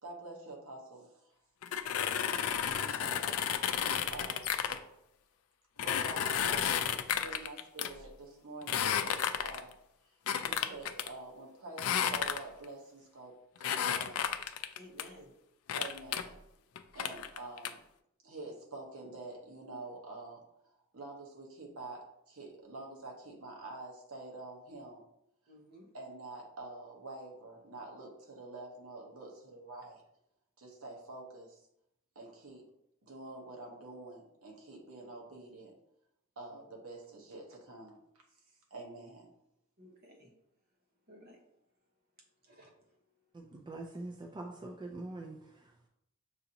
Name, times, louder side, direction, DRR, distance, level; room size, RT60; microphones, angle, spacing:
voice 1, 0.0-1.3 2.8-3.7 4.1-4.5 5.8-9.7 10.4-14.3 15.7-16.4 16.9-17.8 18.2-25.0 25.9-30.0 30.6-31.6 32.1-32.6 33.0-35.7 36.4-38.0 38.7-39.3, right 2 dB, 70° right, 0 dB, 1.0 m, -47 dB
sound 1, 1.6-4.8 5.8-7.9 8.6-9.7 10.3-11.1 11.8-12.6 13.6-15.0 15.7-16.2 16.7-17.7, left 8 dB, 75° left, 0.4 m, -32 dB
voice 2, 2.2-2.6 4.6-4.8 14.8-15.3 25.5-25.9 36.5-36.6 39.8-40.3 41.1-41.4 42.4-42.7, equal, 45° right, 0 dB, 1.0 m, -54 dB
voice 3, 43.3-45.9, right 2 dB, 20° right, 1 dB, 0.4 m, -44 dB
6.8 x 2.6 x 2.8 m, 0.79 s
head